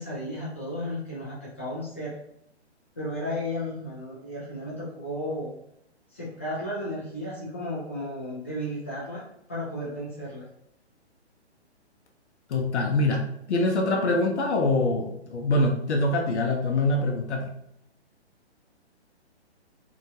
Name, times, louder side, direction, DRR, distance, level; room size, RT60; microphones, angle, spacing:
voice 1, 0.0-2.1 3.0-5.5 6.1-10.5, left 1 dB, 15° left, -8 dB, 0.3 m, -34 dB
voice 2, 12.5-17.5, left 2 dB, 75° left, 1 dB, 0.7 m, -24 dB
2.8 x 2.3 x 2.7 m, 0.75 s
hypercardioid pair, 150°, 34 cm